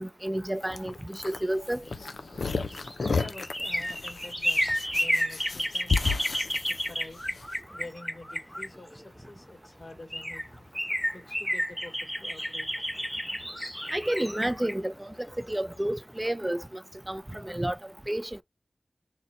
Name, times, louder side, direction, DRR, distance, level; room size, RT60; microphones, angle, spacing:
voice 1, 0.0-1.8 13.9-16.6 17.1-17.8 18.1-18.3, right 1 dB, 20° right, 0.4 m, -30 dB
sound 1, 0.6-7.4, left 4 dB, 90° left, 0.4 m, -32 dB
sound 2, 2.7-9.2 9.8-9.9 10.1-15.9 16.2-16.3, equal, 5° left, 0.7 m, -31 dB
voice 2, 3.2-6.1 6.7-7.4 7.7-10.6 11.1-12.7, left 2 dB, 45° left, 2.4 m, -47 dB
3.9 x 2.1 x 4.1 m
wide cardioid pair, 55°, 0 cm